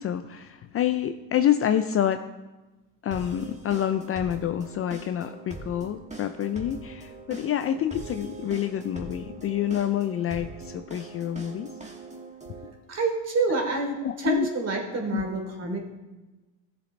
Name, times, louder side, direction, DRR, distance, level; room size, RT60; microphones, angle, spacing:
voice 1, 0.0-2.2 3.0-11.7 14.0-14.5 15.1-15.2, left 10 dB, 30° left, 9 dB, 0.5 m, -27 dB
sound 1, 3.1-12.7, right 3 dB, 15° right, 1.9 m, -42 dB
voice 2, 12.9-15.8, right 3 dB, 35° right, 1 dB, 3.2 m, -27 dB
15.5 x 7.1 x 3.2 m, 1.1 s
hypercardioid pair, 90°, 45 cm